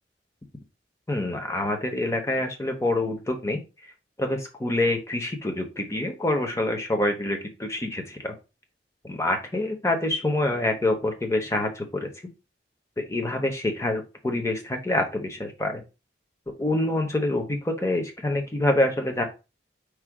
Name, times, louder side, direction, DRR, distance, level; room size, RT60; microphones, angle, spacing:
voice 1, 1.1-3.6 4.2-8.3 9.0-12.1 13.0-15.8 16.5-19.2, left 1 dB, 15° left, 3 dB, 0.8 m, -26 dB
4.8 x 2.3 x 4.7 m, 0.28 s
head